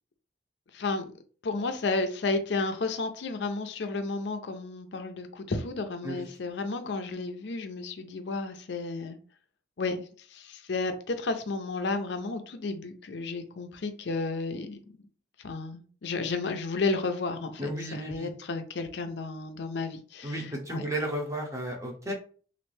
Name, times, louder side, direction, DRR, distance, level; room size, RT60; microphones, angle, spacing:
voice 1, 0.7-1.1 1.4-9.2 9.8-10.0 10.3-14.8 15.4-20.8 22.1-22.2, left 3 dB, 70° left, 0.5 m, -32 dB
voice 2, 17.6-18.3 20.2-22.1, right 1 dB, 15° right, 0.7 m, -33 dB
3.1 x 2.5 x 3.1 m
head